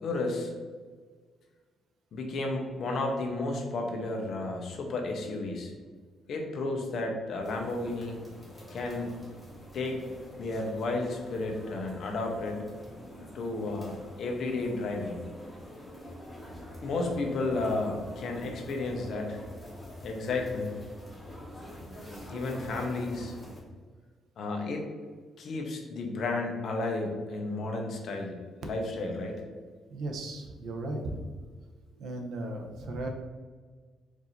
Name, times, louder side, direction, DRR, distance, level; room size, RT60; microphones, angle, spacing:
voice 1, 0.0-0.5 2.1-5.7 6.3-8.2 8.7-9.1 9.7-10.0 10.4-12.6 13.2-15.2 16.8-19.4 20.0-20.8 22.3-23.3 24.4-24.8 25.4-28.3 28.6-29.4, left 2 dB, 50° left, 2 dB, 0.8 m, -32 dB
sound 1, 7.4-23.6, equal, 5° left, 1.2 m, -46 dB
voice 2, 29.9-31.2 32.0-33.1, right 2 dB, 60° right, 2 dB, 0.7 m, -36 dB
4.7 x 2.6 x 4.1 m, 1.5 s
cardioid pair, 175°, 0 cm